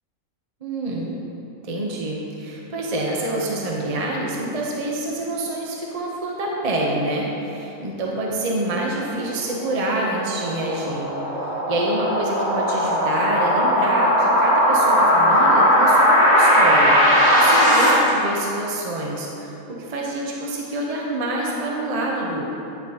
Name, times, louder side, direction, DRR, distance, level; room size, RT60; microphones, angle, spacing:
voice 1, 0.6-1.1 1.6-11.1 11.7-22.4, right 1 dB, 35° right, -2 dB, 0.6 m, -27 dB
sound 1, 9.2-17.9, equal, 60° right, 1.9 m, -18 dB
9.2 x 6.5 x 2.8 m, 2.9 s
omnidirectional pair, 1.5 m